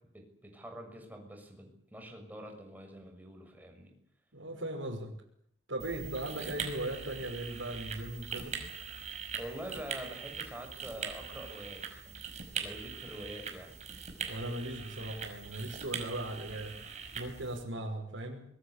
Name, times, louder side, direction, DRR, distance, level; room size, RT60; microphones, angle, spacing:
voice 1, 0.1-3.9 9.3-12.2 12.6-13.8, right 1 dB, 10° right, 3 dB, 6.7 m, -46 dB
voice 2, 4.3-5.1 5.7-8.6 14.3-16.8 17.1-18.4, right 1 dB, 80° right, -3 dB, 5.8 m, -38 dB
sound 1, 5.8-17.6, right 6 dB, 35° right, 5.5 m, -42 dB
24.5 x 23.0 x 8.4 m, 0.69 s
head